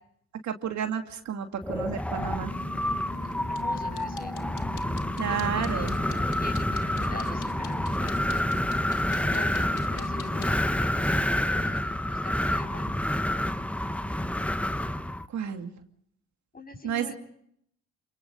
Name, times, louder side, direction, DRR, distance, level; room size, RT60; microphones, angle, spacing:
voice 1, 0.4-2.5 5.2-6.0 15.3-15.7 16.8-17.1, right 8 dB, 65° right, 5 dB, 2.6 m, -31 dB
Wind, 1.6-15.3, left 1 dB, 5° left, 1.1 m, -28 dB
sound 1, 2.5-10.5, left 7 dB, 85° left, 1.7 m, -43 dB
voice 2, 3.4-4.3 5.3-8.3 9.2-13.0 16.5-17.1, left 2 dB, 30° left, 5 dB, 7.4 m, -43 dB
28.5 x 27.0 x 4.0 m, 0.69 s
cardioid pair, 90°, 30 cm